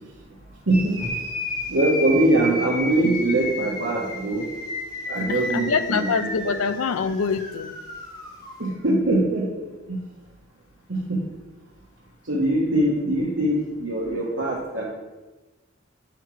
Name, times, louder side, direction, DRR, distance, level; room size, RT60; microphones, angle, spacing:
sound 1, 0.7-8.6, left 2 dB, 45° left, 2.5 m, -32 dB
voice 1, 0.7-1.1 1.7-4.5 5.1-6.6 8.6-9.5 9.9-10.0 10.9-11.2 12.3-14.8, right 1 dB, 60° right, -5 dB, 1.1 m, -22 dB
voice 2, 5.5-7.8, left 5 dB, 80° left, 12 dB, 0.4 m, -24 dB
9.9 x 4.7 x 3.2 m, 1.2 s
head